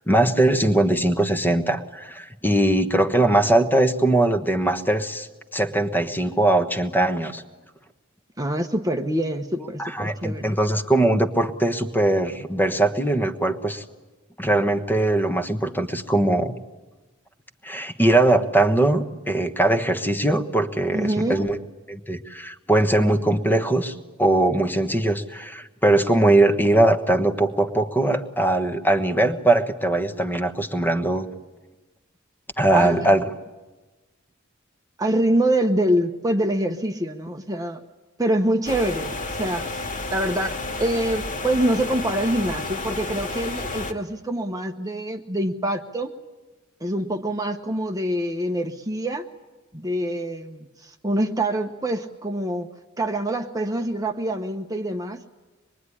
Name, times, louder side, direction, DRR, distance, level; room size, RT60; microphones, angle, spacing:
voice 1, 0.0-5.3 5.5-7.4 9.8-13.8 14.4-16.5 17.6-21.6 21.9-31.3 32.6-33.3, right 1 dB, 10° left, 7 dB, 1.3 m, -21 dB
voice 2, 8.4-10.4 20.9-21.4 32.7-33.1 35.0-37.8 38.2-46.1 46.8-49.3 49.7-52.7 53.0-55.2, right 1 dB, 15° right, 4 dB, 1.0 m, -25 dB
sound 1, 38.7-43.9, left 3 dB, 40° left, 2.2 m, -31 dB
25.0 x 22.0 x 9.9 m, 1.2 s
head